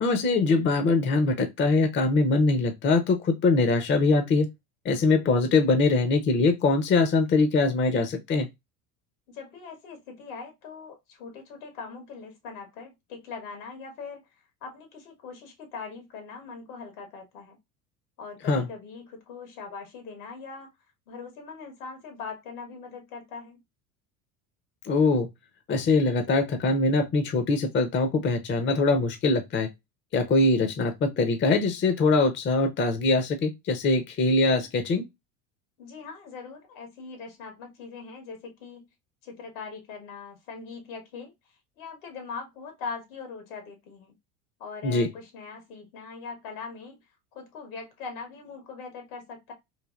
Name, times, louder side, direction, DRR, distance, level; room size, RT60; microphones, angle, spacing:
voice 1, 0.0-4.5 4.8-8.5 18.5-18.7 24.8-25.3 25.7-29.7 30.1-35.1 44.8-45.1, left 3 dB, 30° left, 0.6 m, -23 dB
voice 2, 9.3-14.2 14.6-17.6 18.2-20.7 21.1-23.6 35.8-38.9 39.2-41.3 41.8-44.1 44.6-47.0 47.3-49.5, left 5 dB, 80° left, 1.5 m, -41 dB
3.2 x 2.4 x 2.3 m
supercardioid pair, 90°, 42 cm